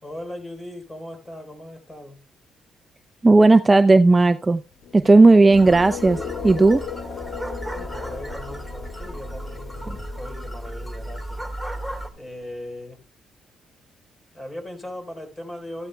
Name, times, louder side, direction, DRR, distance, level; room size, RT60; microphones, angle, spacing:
voice 1, 0.0-2.2 7.7-11.4 12.1-13.0 14.3-15.9, left 1 dB, 20° left, 3.9 m, -38 dB
voice 2, 3.2-4.6 4.9-6.8, right 3 dB, 20° right, 0.5 m, -14 dB
sound 1, 4.7-12.8, left 7 dB, 65° left, 1.2 m, -38 dB
sound 2, 5.5-12.1, right 1 dB, 5° left, 2.0 m, -34 dB
13.5 x 12.5 x 2.2 m
cardioid pair, 90°, 0 cm